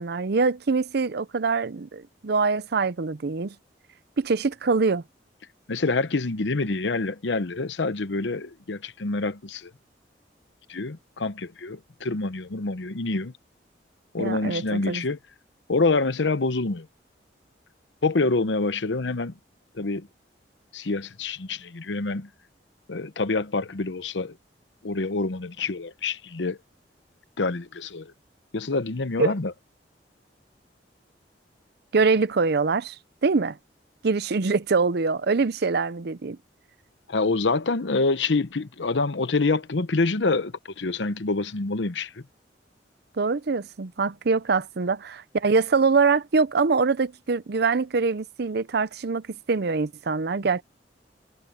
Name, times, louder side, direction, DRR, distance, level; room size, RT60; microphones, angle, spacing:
voice 1, 0.0-3.5 4.2-5.0 14.2-15.0 29.2-29.3 31.9-33.0 33.2-33.6 34.0-36.4 43.2-50.6, right 4 dB, 65° right, 0.6 m, -24 dB
voice 2, 5.7-9.7 10.7-13.3 14.1-15.2 15.7-16.9 18.0-19.3 19.7-20.1 20.7-22.3 22.9-24.4 24.8-26.6 27.4-28.1 28.5-29.5 37.1-42.2, left 3 dB, 90° left, 0.9 m, -26 dB
head